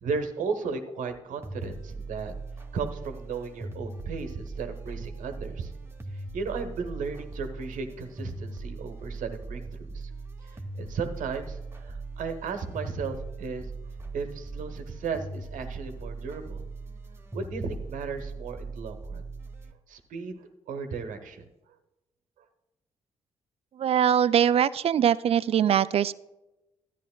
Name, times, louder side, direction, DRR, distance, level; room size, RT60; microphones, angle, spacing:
voice 1, 0.0-2.3 2.7-5.7 6.1-10.1 10.4-13.7 14.1-16.6 17.3-19.2 19.9-21.4, right 5 dB, 60° right, 7 dB, 1.0 m, -35 dB
sound 1, 1.4-19.7, right 3 dB, 15° right, 1.0 m, -39 dB
voice 2, 23.8-26.1, right 9 dB, 40° right, 18 dB, 0.4 m, -22 dB
13.5 x 9.1 x 2.2 m, 0.98 s
figure-of-eight pair, 40°, 15 cm